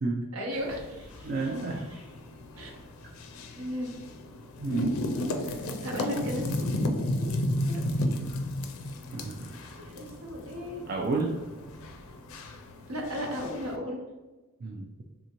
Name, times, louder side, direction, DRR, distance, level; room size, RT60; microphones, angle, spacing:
voice 1, 0.3-2.0 2.6-2.7 3.6-3.9 5.4-7.4 7.7-8.2 9.8-10.8 12.9-14.0, equal, 80° right, 1 dB, 0.8 m, -36 dB
sound 1, 0.5-13.8, left 1 dB, 75° left, 0.4 m, -34 dB
voice 2, 1.2-1.9 4.6-5.0 9.1-9.5 10.9-11.3 14.6-14.9, right 3 dB, 45° right, 0 dB, 0.3 m, -30 dB
3.5 x 2.5 x 2.9 m, 1.2 s
head